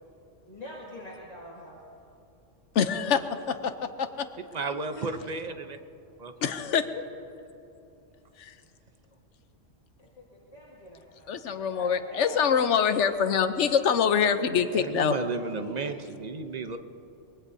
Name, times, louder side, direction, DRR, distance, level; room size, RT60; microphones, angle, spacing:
voice 1, 0.5-1.8 5.0-5.6 10.0-12.7 15.2-16.0, left 1 dB, 30° left, -6 dB, 2.3 m, -45 dB
voice 2, 2.7-4.3 6.4-7.0 8.4-8.5 11.3-15.1, left 7 dB, 70° left, 10 dB, 1.1 m, -25 dB
voice 3, 4.5-5.8 6.2-6.3 14.7-16.8, right 3 dB, 40° right, 8 dB, 0.8 m, -33 dB
23.5 x 21.0 x 2.7 m, 2.9 s
omnidirectional pair, 1.3 m